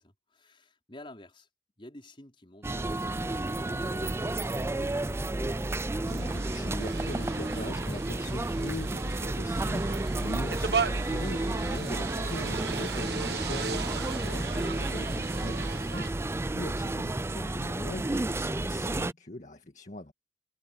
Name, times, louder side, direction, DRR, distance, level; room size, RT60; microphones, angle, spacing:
voice 1, 0.0-1.5 1.8-5.3, left 1 dB, 30° left, 4.8 m, -51 dB
sound 1, 2.6-19.1, right 2 dB, 15° right, 0.4 m, -31 dB
voice 2, 6.0-13.9 14.2-20.1, left 1 dB, 45° left, 1.9 m, -41 dB
sound 2, 6.1-16.1, right 5 dB, 65° right, 1.3 m, -37 dB
head